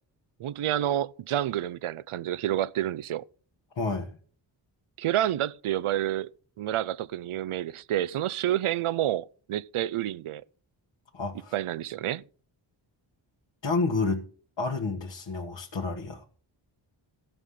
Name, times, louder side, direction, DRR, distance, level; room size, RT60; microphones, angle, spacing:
voice 1, 0.4-3.2 5.0-6.3 6.6-10.4 11.5-12.2, right 12 dB, 90° right, 0.6 m, -29 dB
voice 2, 3.7-4.1 11.1-11.5 13.6-14.3 14.6-16.3, left 3 dB, 60° left, 1.8 m, -29 dB
15.5 x 5.7 x 6.6 m
wide cardioid pair, 110°, 48 cm